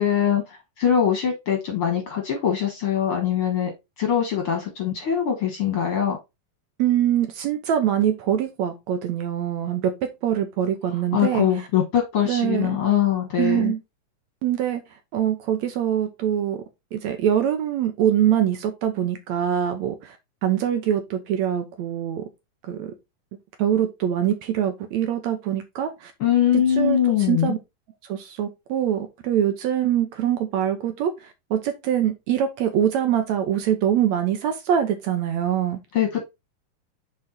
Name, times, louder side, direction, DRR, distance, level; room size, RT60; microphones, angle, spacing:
voice 1, 0.0-3.7 4.0-6.2 11.1-13.7 26.2-27.5 35.9-36.1, left 9 dB, 55° left, 1.6 m, -22 dB
voice 2, 6.8-11.7 12.2-12.8 13.4-13.8 14.4-14.8 15.1-16.6 16.9-20.2 20.4-22.2 22.7-22.9 23.6-26.1 26.7-27.6 28.1-35.8, right 10 dB, 70° right, 1.9 m, -24 dB
6.4 x 4.5 x 4.0 m
omnidirectional pair, 3.7 m